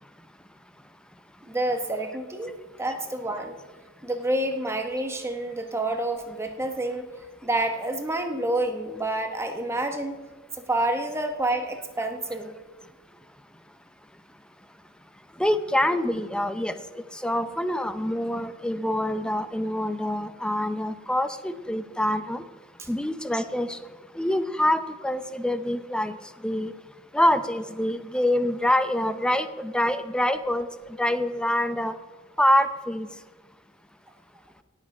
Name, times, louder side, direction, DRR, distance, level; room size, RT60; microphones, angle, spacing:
voice 1, 1.5-3.6 4.0-7.1 7.4-10.2 10.5-12.5 22.8-22.9, right 1 dB, 10° right, 5 dB, 1.0 m, -28 dB
voice 2, 15.4-22.4 22.9-23.8 24.1-26.2 26.4-26.7 27.1-32.0 32.4-33.1, left 1 dB, 5° left, 11 dB, 0.5 m, -25 dB
17.5 x 7.6 x 4.9 m, 1.3 s
head